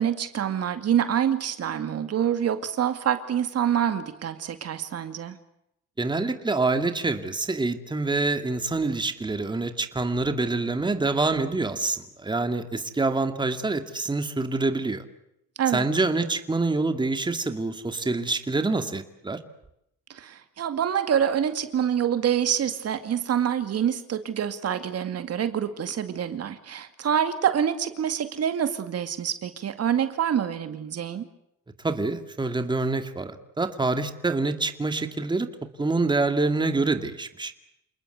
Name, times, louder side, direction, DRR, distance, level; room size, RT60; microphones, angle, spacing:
voice 1, 0.0-5.4 15.6-15.9 20.1-31.3, right 9 dB, 55° right, 10 dB, 2.3 m, -26 dB
voice 2, 6.0-15.0 15.7-19.4 31.8-35.5 35.8-37.5, right 3 dB, 15° right, 8 dB, 2.3 m, -26 dB
29.0 x 20.5 x 8.2 m, 0.79 s
cardioid pair, 110°, 29 cm